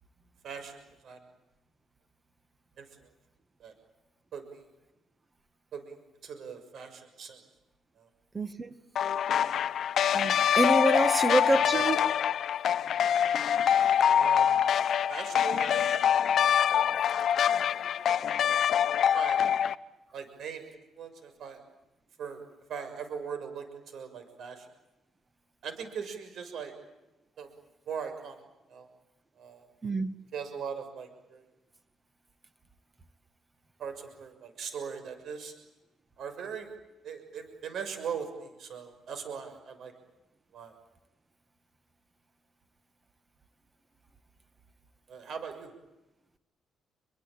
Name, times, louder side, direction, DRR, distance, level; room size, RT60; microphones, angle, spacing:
voice 1, 0.4-1.2 2.8-2.9 3.6-3.7 4.3-4.6 5.7-6.0 6.2-7.4 8.0-8.1 11.7-11.9 14.1-14.5 15.1-15.9 16.8-16.9 17.8-18.2 18.9-19.4 20.1-20.7 21.0-21.6 22.2-22.4 22.7-24.7 25.6-26.7 27.4-27.5 27.9-28.4 28.7-28.9 29.4-29.7 30.3-31.4 33.8-35.5 36.2-36.7 37.0-39.9 40.5-40.7 45.1-45.7, right 6 dB, 60° right, 6.5 m, -40 dB
voice 2, 8.3-8.8 10.1-12.0 29.8-30.1, right 2 dB, 20° right, 2.1 m, -27 dB
sound 1, 9.0-19.7, left 9 dB, 60° left, 0.9 m, -25 dB
28.0 x 23.0 x 9.0 m
cardioid pair, 115°, 0 cm